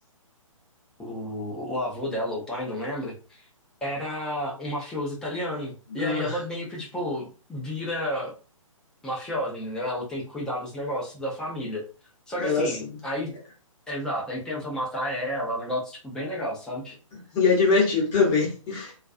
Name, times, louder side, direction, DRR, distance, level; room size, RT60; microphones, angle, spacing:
voice 1, 1.0-3.4 3.8-8.3 9.0-11.8 12.3-13.3 13.9-17.0, equal, 5° left, 0.5 m, -31 dB
voice 2, 5.9-6.4 12.4-12.9 17.3-18.9, left 4 dB, 20° left, 0.9 m, -23 dB
2.4 x 2.2 x 2.5 m
figure-of-eight pair, 135°, 18 cm